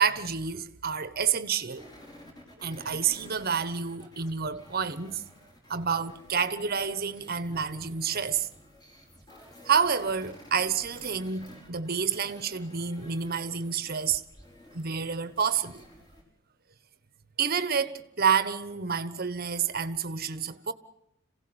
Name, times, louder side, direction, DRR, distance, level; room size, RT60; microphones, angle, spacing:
voice 1, 0.0-1.9 2.6-5.2 5.7-8.5 9.6-14.2 14.7-15.8 17.4-20.7, right 6 dB, 50° right, 1.3 m, -29 dB
sound 1, 1.7-16.2, left 1 dB, 20° left, 5.4 m, -52 dB
27.0 x 17.0 x 8.1 m
head